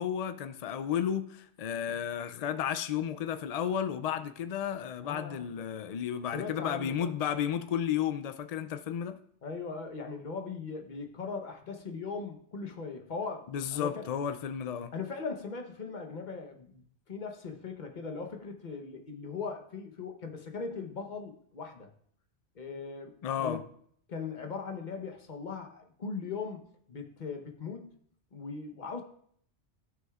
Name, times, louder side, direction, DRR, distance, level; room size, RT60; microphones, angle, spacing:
voice 1, 0.0-9.2 13.5-14.9 23.2-23.6, left 9 dB, 80° left, 0.3 m, -33 dB
voice 2, 5.0-5.5 6.3-7.1 9.4-14.1 14.9-16.8 17.1-21.9 22.5-23.6 24.1-26.6 26.9-27.9 28.3-29.0, left 4 dB, 45° left, 1.0 m, -39 dB
14.0 x 6.2 x 2.4 m
omnidirectional pair, 1.2 m